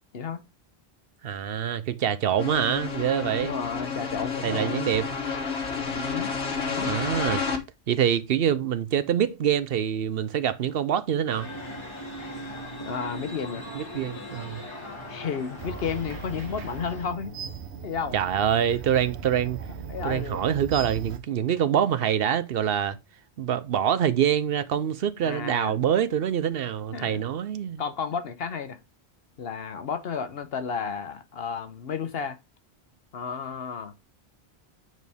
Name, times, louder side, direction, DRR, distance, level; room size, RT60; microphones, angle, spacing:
voice 1, 1.2-3.6 4.4-5.1 6.9-7.4 7.9-11.5 13.7-14.6 18.1-19.6 20.0-23.0 23.4-27.8, right 9 dB, 65° right, 0.8 m, -25 dB
sound 1, 2.4-7.6, left 5 dB, 85° left, 1.6 m, -30 dB
voice 2, 3.4-4.9 5.9-6.4 6.7-7.0 12.8-13.6 15.1-17.4 17.8-18.1 19.9-20.4 25.2-25.7 26.9-27.2 27.8-28.8 29.4-32.4 33.1-33.9, left 6 dB, 65° left, 1.1 m, -32 dB
sound 2, 11.3-17.1, equal, 25° left, 2.1 m, -39 dB
Making Copies in the Copy Room, 15.6-21.2, right 6 dB, 85° right, 1.2 m, -38 dB
9.1 x 4.2 x 3.4 m
omnidirectional pair, 1.1 m